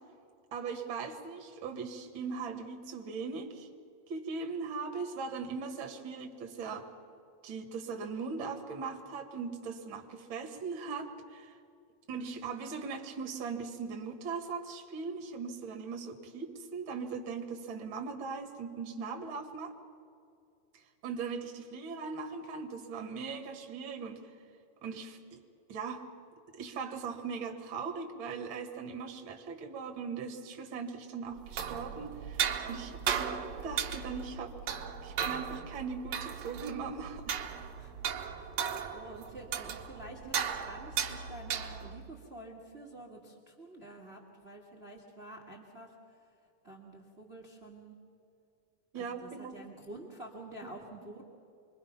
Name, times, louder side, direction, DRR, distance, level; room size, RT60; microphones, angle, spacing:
voice 1, 0.5-3.7 4.1-6.9 7.4-11.5 12.1-19.7 20.7-24.3 24.8-25.4 25.7-26.1 26.5-34.6 35.0-37.3 48.9-49.5, right 5 dB, 45° right, 4 dB, 2.1 m, -39 dB
sound 1, 31.4-42.0, right 8 dB, 60° right, 2.0 m, -36 dB
voice 2, 38.9-45.9 46.6-47.9 48.9-51.2, right 1 dB, 25° right, 0 dB, 1.6 m, -48 dB
27.0 x 22.5 x 5.9 m, 2.5 s
omnidirectional pair, 4.0 m